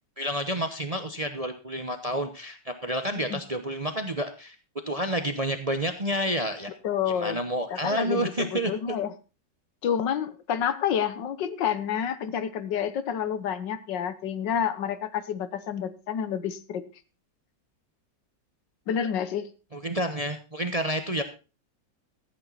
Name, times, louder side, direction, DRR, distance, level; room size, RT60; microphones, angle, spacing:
voice 1, 0.2-4.5 4.9-6.7 7.1-8.7 19.7-21.2, right 1 dB, 30° right, 8 dB, 0.7 m, -29 dB
voice 2, 6.8-7.4 7.7-9.1 9.8-16.8 18.9-19.5, left 8 dB, 85° left, 13 dB, 1.7 m, -29 dB
14.0 x 8.8 x 3.9 m, 0.32 s
omnidirectional pair, 1.9 m